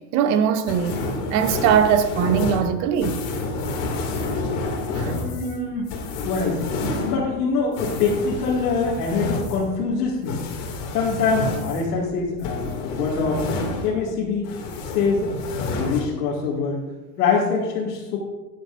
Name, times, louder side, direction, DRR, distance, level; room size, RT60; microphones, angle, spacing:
voice 1, 0.1-1.0 1.3-3.2 4.9-5.1 5.4-5.9, right 8 dB, 40° right, 0.8 m, -21 dB
sound 1, 0.7-14.2 14.4-16.0, left 2 dB, 55° left, 2.5 m, -29 dB
voice 2, 5.0-5.9 6.2-6.7 7.0-10.4 10.9-13.4 13.8-14.5 14.8-16.8 17.2-18.2, left 4 dB, 80° left, 2.1 m, -24 dB
12.0 x 10.0 x 2.6 m
supercardioid pair, 155°, 45 cm